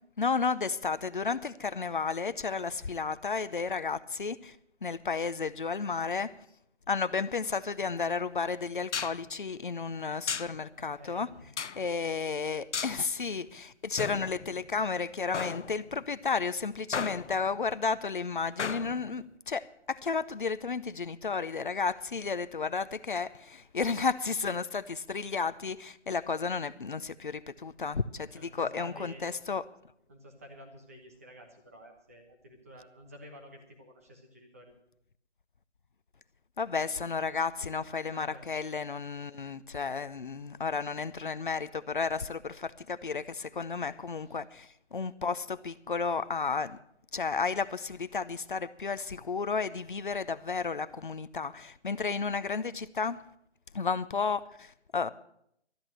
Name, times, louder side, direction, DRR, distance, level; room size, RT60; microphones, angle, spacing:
voice 1, 0.2-4.6 4.8-6.3 6.9-11.3 11.8-29.6 36.6-46.8 47.1-53.2 53.7-55.1, left 5 dB, 45° left, 0.7 m, -32 dB
sound 1, 7.8-7.9 8.9-9.2 10.3-10.6 11.6-11.9 12.7-13.0 14.0-14.9 15.3-16.0 16.9-17.6 18.6-19.2, left 6 dB, 85° left, 0.7 m, -36 dB
voice 2, 10.9-11.5 21.9-22.0 28.3-29.2 30.1-34.7 38.1-38.5 44.2-44.4, equal, 15° right, 1.1 m, -51 dB
13.0 x 8.8 x 8.8 m
figure-of-eight pair, 170°, 35 cm